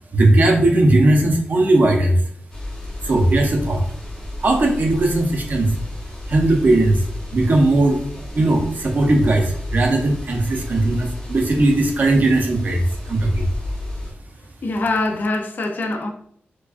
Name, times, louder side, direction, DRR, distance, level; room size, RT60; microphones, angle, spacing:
voice 1, 0.1-2.2 3.0-3.8 4.4-5.7 6.3-7.0 7.3-13.5, right 2 dB, 45° right, 0.6 m, -18 dB
Basement Stairs Room Tone AT, 2.5-14.1, left 1 dB, 20° left, 0.8 m, -32 dB
voice 2, 14.6-16.1, left 2 dB, 50° left, 0.5 m, -23 dB
4.6 x 2.3 x 2.4 m
wide cardioid pair, 175°, 4 cm